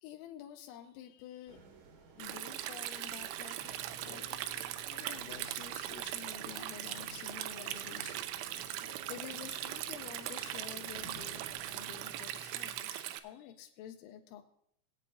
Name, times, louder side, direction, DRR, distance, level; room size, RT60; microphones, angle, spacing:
voice 1, 0.0-1.6 2.2-8.3 8.6-11.5 11.7-14.4, left 10 dB, 90° left, 3 dB, 3.1 m, -50 dB
sound 1, 1.5-12.1, right 2 dB, 70° right, 1.8 m, -55 dB
Stream, 2.2-13.2, right 13 dB, 90° right, 3.0 m, -40 dB
Sliding door, 3.6-12.8, left 2 dB, 70° left, 2.4 m, -59 dB
22.5 x 8.5 x 2.6 m, 0.71 s
omnidirectional pair, 5.3 m